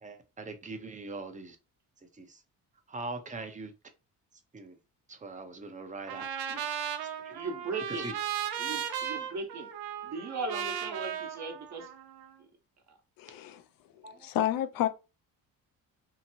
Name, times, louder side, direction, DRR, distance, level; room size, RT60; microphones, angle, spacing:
voice 1, 0.0-1.6 2.1-2.4 2.9-3.7 4.5-4.8 5.1-6.3 7.2-7.4 7.9-8.2 14.0-14.3, right 3 dB, 20° right, 0.6 m, -41 dB
Trumpet, 6.1-12.3, right 9 dB, 85° right, 0.6 m, -36 dB
voice 2, 7.3-8.1 8.6-9.7 10.0-11.9 12.9-13.0, right 3 dB, 50° right, 1.0 m, -38 dB
voice 3, 13.2-13.6 14.2-14.9, left 12 dB, 70° left, 0.5 m, -29 dB
2.8 x 2.6 x 2.7 m
cardioid pair, 95°, 36 cm